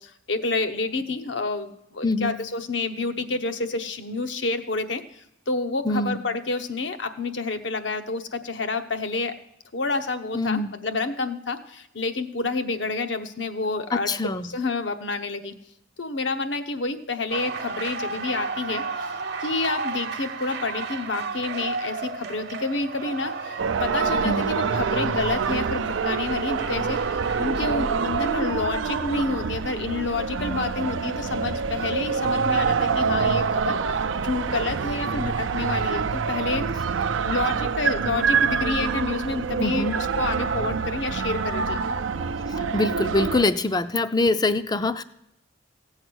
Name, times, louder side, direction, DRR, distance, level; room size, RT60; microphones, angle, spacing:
voice 1, 0.0-9.4 9.7-15.5 16.0-18.8 19.4-34.0 34.2-36.7 37.2-41.8, left 3 dB, 70° left, 9 dB, 0.9 m, -29 dB
voice 2, 2.0-2.3 5.8-6.2 10.3-10.7 13.9-14.5 24.2-24.5 39.6-40.0 42.7-45.0, left 2 dB, 20° left, 13 dB, 0.5 m, -24 dB
sound 1, 17.3-28.5, right 4 dB, 55° right, 0.9 m, -34 dB
sound 2, 23.6-43.4, right 5 dB, 85° right, 0.5 m, -26 dB
16.0 x 7.9 x 6.2 m, 0.82 s
head